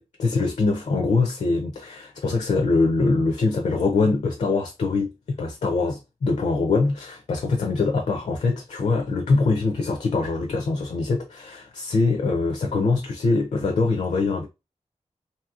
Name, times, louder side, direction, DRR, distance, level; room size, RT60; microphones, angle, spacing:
voice 1, 0.0-14.5, left 3 dB, 75° left, 0.5 m, -23 dB
3.0 x 2.7 x 2.3 m
wide cardioid pair, 135°, 12 cm